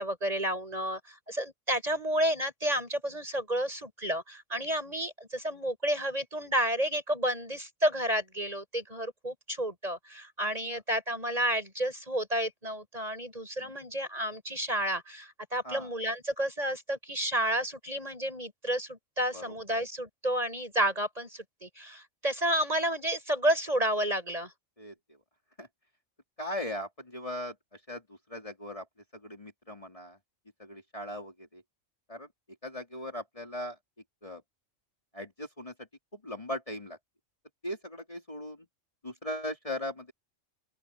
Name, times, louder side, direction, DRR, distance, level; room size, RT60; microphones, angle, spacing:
voice 1, 0.0-24.5, equal, 30° right, 7.7 m, -31 dB
voice 2, 26.4-28.9 29.1-30.2 30.6-31.6 32.1-32.3 32.6-33.8 34.2-34.4 35.1-37.0 37.6-38.7 39.0-40.1, left 1 dB, 25° left, 3.7 m, -39 dB
open air
omnidirectional pair, 1.3 m